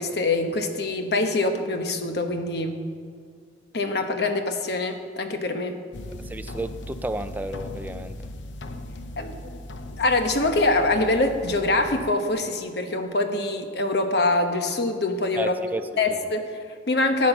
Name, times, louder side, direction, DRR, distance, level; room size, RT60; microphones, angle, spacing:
voice 1, 0.0-2.8 3.7-5.8 9.2-9.6 10.0-15.5 16.0-17.3, left 2 dB, 60° left, 6 dB, 1.0 m, -24 dB
sound 1, 5.9-12.1, left 1 dB, 85° left, 0.7 m, -38 dB
voice 2, 6.2-8.1 15.4-15.8, right 1 dB, 10° right, 9 dB, 0.4 m, -31 dB
13.5 x 7.4 x 5.9 m, 2.1 s
head